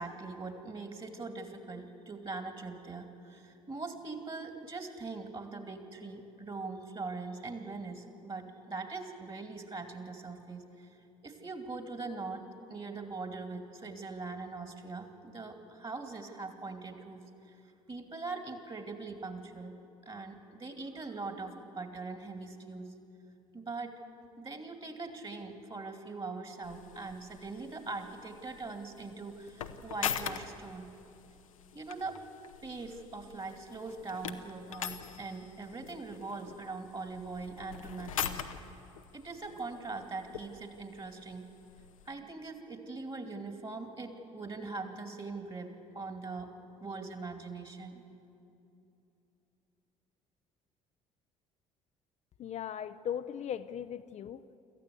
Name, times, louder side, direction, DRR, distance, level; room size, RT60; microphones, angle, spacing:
voice 1, 0.0-10.9 11.2-12.4 12.7-17.2 17.5-17.6 17.9-19.7 20.1-22.9 23.5-23.9 24.4-30.9 31.7-32.2 32.6-38.4 39.1-41.5 42.1-46.5 46.8-48.0, right 3 dB, 30° right, 6 dB, 2.5 m, -42 dB
sound 1, 26.6-42.1, left 8 dB, 85° left, 0.9 m, -43 dB
voice 2, 52.4-54.4, left 9 dB, 45° left, 10 dB, 0.6 m, -38 dB
26.0 x 14.5 x 8.3 m, 2.8 s
figure-of-eight pair, 55°, 17 cm